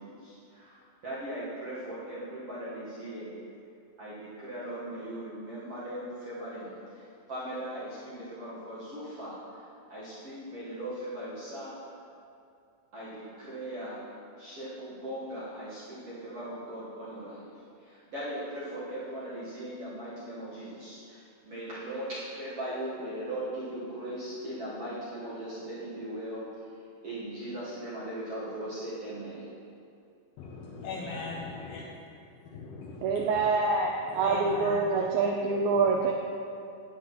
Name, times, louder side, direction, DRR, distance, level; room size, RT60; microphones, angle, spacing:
voice 1, 0.0-3.4 4.0-11.7 12.9-14.0 14.4-17.5 17.8-26.5 27.0-29.6, right 1 dB, 60° right, -10 dB, 1.6 m, -39 dB
voice 2, 30.4-31.9 32.5-33.2 34.1-35.1 35.7-36.0, left 3 dB, 75° left, -4 dB, 2.3 m, -39 dB
voice 3, 33.0-36.1, right 4 dB, 85° right, 1 dB, 2.1 m, -26 dB
10.5 x 9.3 x 3.0 m, 2.5 s
omnidirectional pair, 4.8 m